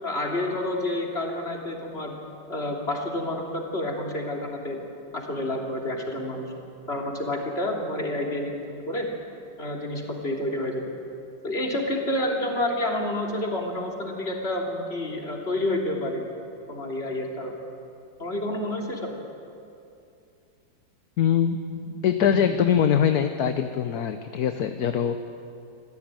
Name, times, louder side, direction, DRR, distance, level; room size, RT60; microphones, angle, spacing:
voice 1, 0.0-2.1 2.5-4.8 5.1-6.5 6.9-9.1 9.6-10.8 11.4-16.3 16.7-17.5 18.2-19.1 21.7-21.9 22.2-22.4, left 1 dB, 35° left, 0 dB, 3.3 m, -29 dB
voice 2, 21.2-21.6 22.0-25.2, left 8 dB, 65° left, 8 dB, 1.3 m, -22 dB
25.5 x 16.0 x 9.0 m, 2.6 s
omnidirectional pair, 1.8 m